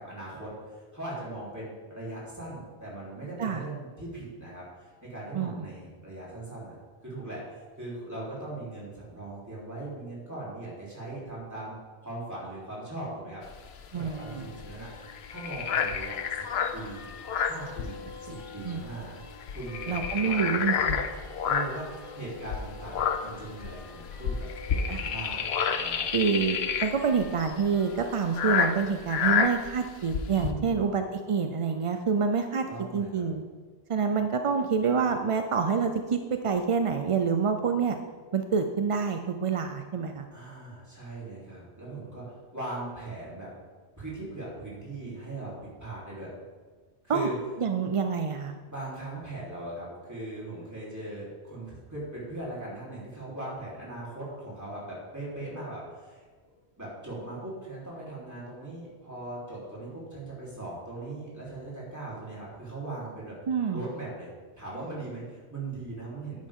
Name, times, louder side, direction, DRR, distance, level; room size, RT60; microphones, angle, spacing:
voice 1, 0.0-6.8 7.0-11.8 12.0-13.4 13.9-14.9 15.3-17.1 17.4-19.2 19.5-21.0 21.4-26.0 30.3-30.8 32.7-33.3 40.3-43.5 44.0-46.3 47.0-47.4 48.7-56.3 56.8-63.4 63.7-64.3 64.6-66.5, right 2 dB, 15° right, -7 dB, 3.6 m, -39 dB
voice 2, 5.3-5.7 13.9-14.5 18.6-18.8 19.9-21.0 24.9-25.1 26.1-32.7 32.9-33.4 33.9-38.0 38.3-40.3 47.1-47.3 47.6-48.5 63.5-63.8, right 6 dB, 50° right, 6 dB, 0.4 m, -27 dB
sound 1, 13.5-18.4 18.7-18.9 19.2-21.9 22.4-30.5, left 7 dB, 70° left, 0.9 m, -29 dB
sound 2, 14.1-28.8, left 6 dB, 30° left, 1.0 m, -47 dB
10.0 x 9.1 x 3.6 m, 1.5 s
omnidirectional pair, 1.1 m